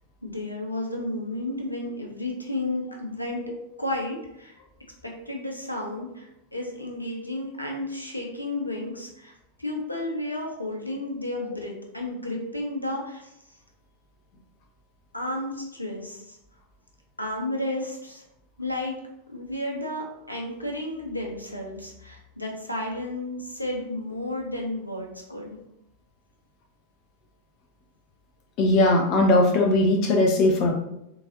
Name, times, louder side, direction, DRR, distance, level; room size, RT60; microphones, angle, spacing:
voice 1, 0.2-3.4 3.8-4.6 5.0-9.3 9.6-13.3 15.1-16.4 17.2-18.2 18.6-19.0 19.3-25.6, left 1 dB, 85° left, 0 dB, 0.8 m, -32 dB
voice 2, 28.6-30.8, left 2 dB, 40° left, 3 dB, 0.6 m, -19 dB
3.9 x 3.7 x 2.8 m, 0.83 s
figure-of-eight pair, 90°, 0 cm